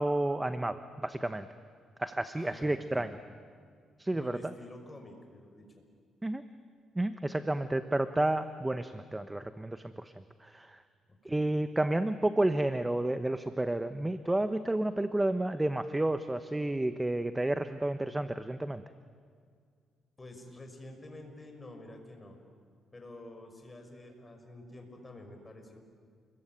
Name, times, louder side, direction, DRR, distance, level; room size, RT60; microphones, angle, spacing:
voice 1, 0.0-1.5 2.0-3.1 4.0-4.5 6.2-6.4 6.9-10.1 10.4-10.8 11.2-18.8, right 1 dB, 10° right, 10 dB, 1.0 m, -31 dB
voice 2, 2.3-3.1 4.1-5.8 11.1-11.6 20.2-22.4 22.9-25.8, left 1 dB, 20° left, 4 dB, 5.9 m, -49 dB
29.5 x 22.0 x 9.2 m, 2.1 s
cardioid pair, 90°, 0 cm